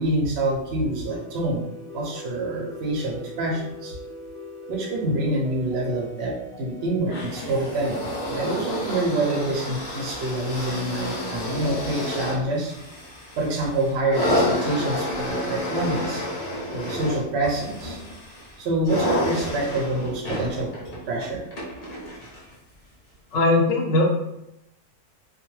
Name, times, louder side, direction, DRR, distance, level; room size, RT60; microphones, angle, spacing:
voice 1, 0.0-1.6 1.9-3.9 4.7-8.0 8.3-12.8 13.4-16.2 16.7-18.0 18.6-20.7 21.1-21.4, right 2 dB, 60° right, -1 dB, 0.7 m, -26 dB
sound 1, 0.8-11.1, left 1 dB, 10° right, 0.6 m, -42 dB
sound 2, 7.1-22.5 23.4-23.5, left 1 dB, 40° left, 0.6 m, -30 dB
voice 2, 23.3-24.0, left 2 dB, 65° left, 0 dB, 0.9 m, -19 dB
2.3 x 2.2 x 3.0 m, 0.86 s
omnidirectional pair, 1.5 m